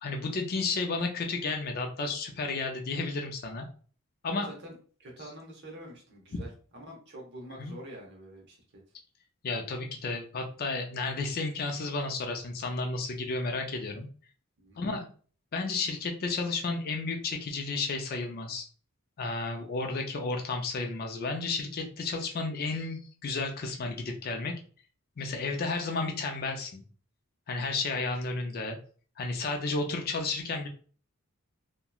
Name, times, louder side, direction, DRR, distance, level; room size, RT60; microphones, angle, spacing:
voice 1, 0.0-3.7 4.2-4.5 7.6-7.7 9.4-14.1 14.8-15.0 15.5-18.6 19.2-24.5 25.2-26.8 27.5-28.8 29.2-30.7, left 3 dB, 45° left, 3 dB, 0.4 m, -32 dB
voice 2, 4.3-8.6 14.6-14.8 27.9-28.0, right 1 dB, 50° right, 0 dB, 0.8 m, -46 dB
2.8 x 2.1 x 2.3 m, 0.42 s
head